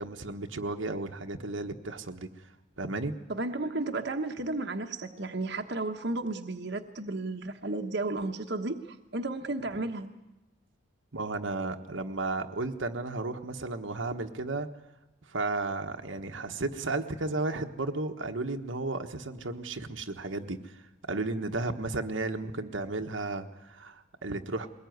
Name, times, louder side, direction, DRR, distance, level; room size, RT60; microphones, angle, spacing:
voice 1, 0.0-2.5 2.8-3.1 11.1-14.7 15.3-20.8 21.1-24.7, right 2 dB, 80° right, 4 dB, 1.3 m, -34 dB
voice 2, 3.3-10.1, right 2 dB, 60° right, 4 dB, 1.1 m, -33 dB
21.5 x 19.5 x 9.4 m, 0.99 s
head